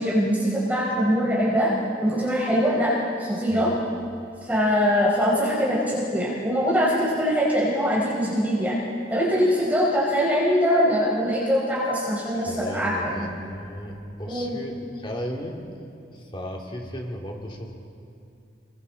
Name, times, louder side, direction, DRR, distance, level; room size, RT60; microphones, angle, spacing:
voice 1, 0.0-1.7 2.0-2.9 3.2-3.7 4.4-8.8 9.1-13.2 14.2-14.6, equal, 10° right, -7 dB, 4.2 m, -22 dB
voice 2, 12.4-15.6 16.1-17.7, equal, 25° left, 0 dB, 2.8 m, -35 dB
29.5 x 22.5 x 4.1 m, 2.6 s
head